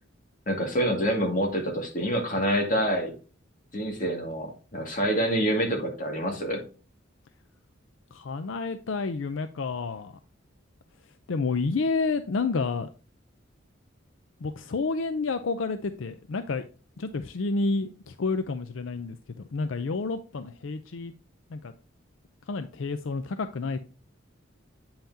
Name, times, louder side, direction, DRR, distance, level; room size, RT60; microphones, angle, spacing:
voice 1, 0.5-3.1 3.7-6.6, equal, 40° left, 1 dB, 2.1 m, -27 dB
voice 2, 8.1-10.2 11.3-12.9 14.4-16.6 17.0-19.2 19.5-21.1 21.5-21.7 22.5-23.8, left 4 dB, 75° left, 10 dB, 0.5 m, -29 dB
8.7 x 5.7 x 2.7 m, 0.36 s
head